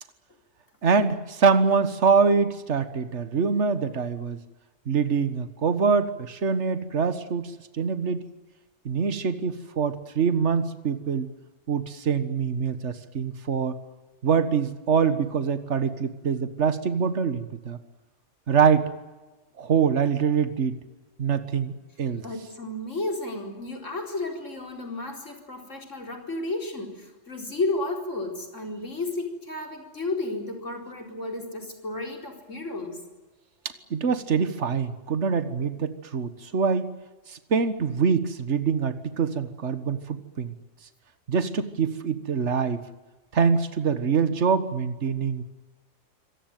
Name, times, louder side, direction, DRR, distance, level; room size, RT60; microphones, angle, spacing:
voice 1, 0.8-4.4 4.9-7.5 7.8-8.2 8.9-11.3 11.7-13.8 14.2-17.8 18.5-18.9 19.6-20.8 21.2-22.2 33.9-37.0 37.3-40.6 41.3-42.8 43.3-45.4, right 6 dB, 65° right, 11 dB, 1.8 m, -24 dB
voice 2, 22.2-33.0, left 2 dB, 80° left, 3 dB, 4.8 m, -32 dB
25.5 x 18.0 x 9.2 m, 1.1 s
omnidirectional pair, 1.3 m